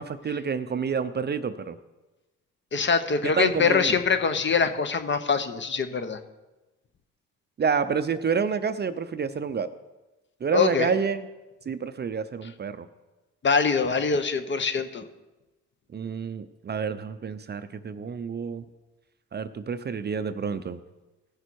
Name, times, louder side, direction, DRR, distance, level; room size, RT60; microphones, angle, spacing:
voice 1, 0.0-1.8 3.4-4.0 7.6-9.7 10.4-11.3 11.7-12.9 15.9-18.6 19.3-20.8, right 6 dB, 35° right, 12 dB, 0.6 m, -28 dB
voice 2, 2.7-6.2 10.5-10.9 13.4-15.0, left 5 dB, 40° left, 10 dB, 0.9 m, -24 dB
16.5 x 6.7 x 4.6 m, 1.1 s
cardioid pair, 90°, 30 cm